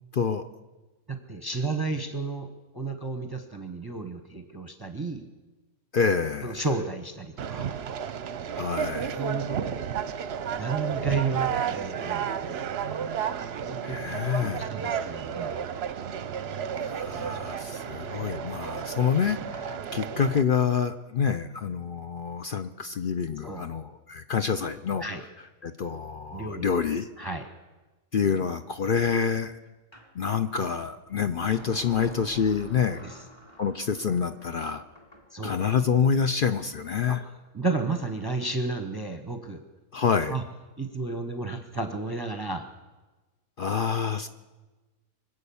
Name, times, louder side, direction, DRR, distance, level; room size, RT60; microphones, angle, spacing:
voice 1, 0.1-0.5 5.9-6.6 8.6-9.2 13.8-14.7 16.8-25.1 25.6-27.1 28.1-29.6 30.1-33.0 33.6-34.8 35.4-37.2 39.9-40.4 43.6-44.3, left 6 dB, 55° left, 9 dB, 0.6 m, -27 dB
voice 2, 1.1-5.3 6.4-7.8 9.1-9.8 10.5-12.6 13.6-15.5 23.4-23.7 25.0-25.2 26.3-26.6 27.2-27.5 33.0-33.2 35.3-35.6 37.1-37.2 37.5-39.6 40.3-40.4 40.8-42.7, right 3 dB, 20° right, 5 dB, 0.9 m, -32 dB
Conversation, 7.4-20.4, right 8 dB, 55° right, 0.8 m, -32 dB
sound 1, 29.9-30.1 31.5-35.3, right 1 dB, 20° left, 2.1 m, -48 dB
25.0 x 8.3 x 7.0 m, 1.2 s
omnidirectional pair, 1.5 m